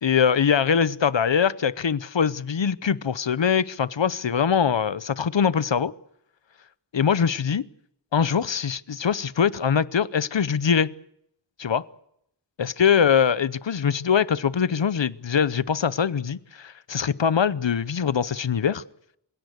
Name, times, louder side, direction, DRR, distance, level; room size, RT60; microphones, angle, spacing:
voice 1, 0.0-5.9 6.9-7.7 8.1-10.9 11.6-11.8 12.6-18.8, left 7 dB, 75° left, 17 dB, 0.8 m, -22 dB
26.0 x 17.5 x 8.0 m, 0.76 s
wide cardioid pair, 55°, 45 cm